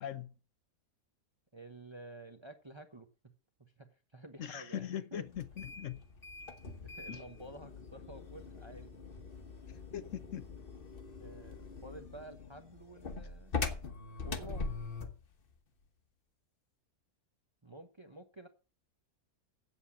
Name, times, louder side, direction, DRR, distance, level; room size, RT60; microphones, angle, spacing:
voice 1, 0.0-0.3 4.4-6.0 7.1-7.2 9.7-10.6, left 10 dB, 65° left, 1.1 m, -41 dB
voice 2, 1.5-3.3 3.6-5.2 6.8-8.9 11.2-13.5 14.2-14.7 17.6-18.5, right 2 dB, 20° right, 1.0 m, -51 dB
sound 1, 5.3-15.2, left 4 dB, 40° left, 1.3 m, -42 dB
8.2 x 8.1 x 7.3 m
omnidirectional pair, 1.5 m